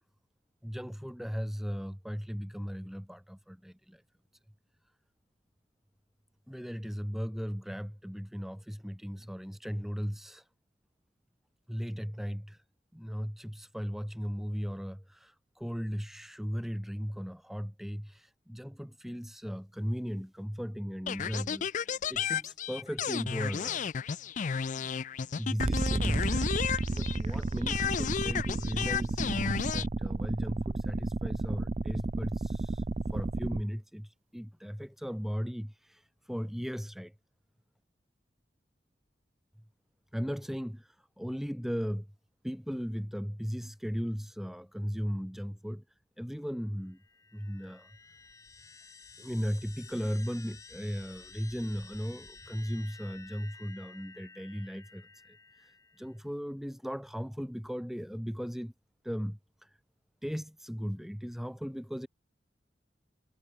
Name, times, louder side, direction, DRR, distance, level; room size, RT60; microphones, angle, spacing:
voice 1, 0.6-4.0 6.5-10.4 11.7-12.6 12.9-23.8 25.3-26.5 26.9-32.8 33.1-37.1 40.1-42.1 42.4-45.8 46.2-47.0 47.3-47.9 49.2-55.7 56.0-58.7 59.0-59.8 60.2-62.1, equal, ahead, 1.1 m, -37 dB
sound 1, 21.1-27.3 27.7-29.9, left 7 dB, 45° left, 0.4 m, -33 dB
sound 2, 25.6-33.6, right 2 dB, 35° right, 0.5 m, -32 dB
sound 3, 46.9-56.2, left 4 dB, 20° left, 0.8 m, -53 dB
head